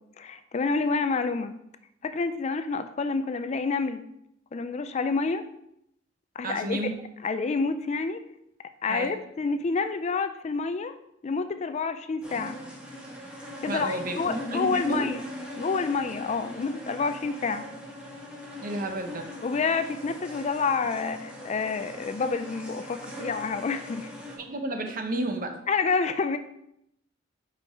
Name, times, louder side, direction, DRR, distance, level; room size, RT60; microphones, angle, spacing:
voice 1, 0.2-1.5 2.0-4.0 4.5-5.5 6.4-6.8 7.2-8.2 8.8-11.0 11.2-12.6 13.6-15.2 15.6-17.7 19.4-24.1 25.7-26.4, left 4 dB, 35° left, 10 dB, 0.4 m, -28 dB
voice 2, 6.4-6.9 8.9-9.1 13.7-14.2 14.5-15.0 18.6-19.3 24.4-25.6, right 1 dB, 45° right, 5 dB, 0.9 m, -31 dB
sound 1, 12.2-24.4, equal, 5° right, 1.6 m, -40 dB
5.4 x 5.3 x 4.8 m, 0.78 s
head